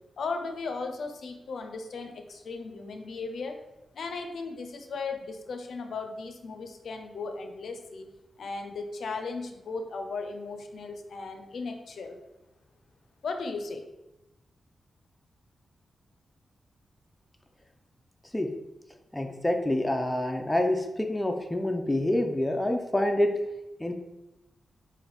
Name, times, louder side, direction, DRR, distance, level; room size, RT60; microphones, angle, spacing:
voice 1, 0.2-3.6 3.9-8.1 8.4-12.2 13.2-13.8, left 4 dB, 75° left, 5 dB, 0.4 m, -36 dB
voice 2, 19.1-23.3 23.8-23.9, left 1 dB, 10° left, 4 dB, 0.4 m, -27 dB
3.4 x 2.5 x 3.9 m, 0.94 s
cardioid pair, 95°, 0 cm